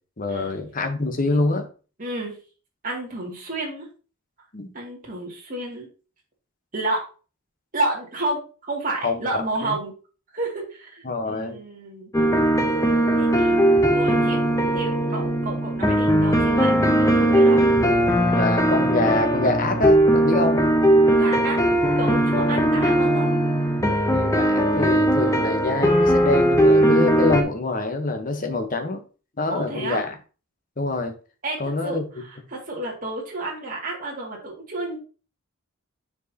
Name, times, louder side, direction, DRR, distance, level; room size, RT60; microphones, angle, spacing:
voice 1, 0.2-1.7 4.5-4.7 9.0-9.8 11.0-11.6 18.4-20.7 22.4-22.6 24.1-29.0 29.4-30.1 30.8-31.1 31.6-32.0, left 3 dB, 40° left, 5 dB, 1.1 m, -25 dB
voice 2, 2.0-2.4 2.8-3.9 4.7-5.9 6.7-7.1 7.7-9.9 10.3-12.1 13.2-14.4 14.7-17.6 21.2-21.6 22.0-23.4 29.5-30.0 31.4-35.0, right 2 dB, 40° right, -3 dB, 2.3 m, -31 dB
sound 1, 12.1-27.4, right 1 dB, 15° left, 0.8 m, -19 dB
9.6 x 4.6 x 2.9 m, 0.35 s
head